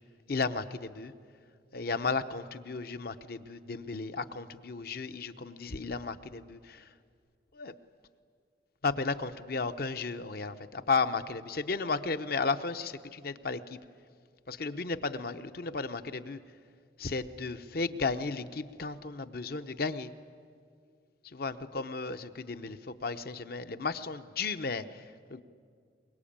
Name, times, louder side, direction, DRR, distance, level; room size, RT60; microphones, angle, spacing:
voice 1, 0.3-1.1 1.7-6.9 7.5-7.7 8.8-13.8 14.5-16.4 17.0-20.1 21.3-25.0 25.3-25.4, left 4 dB, 55° left, 11 dB, 0.8 m, -34 dB
23.5 x 22.0 x 8.7 m, 2.1 s
head